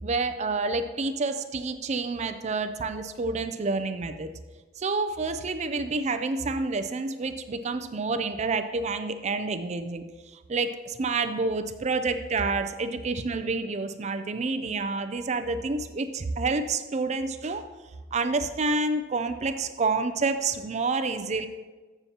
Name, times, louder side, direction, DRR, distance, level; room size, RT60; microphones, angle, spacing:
voice 1, 0.0-4.3 4.8-17.7 18.1-21.5, right 3 dB, 40° right, 9 dB, 0.5 m, -28 dB
14.0 x 6.8 x 2.9 m, 1.3 s
head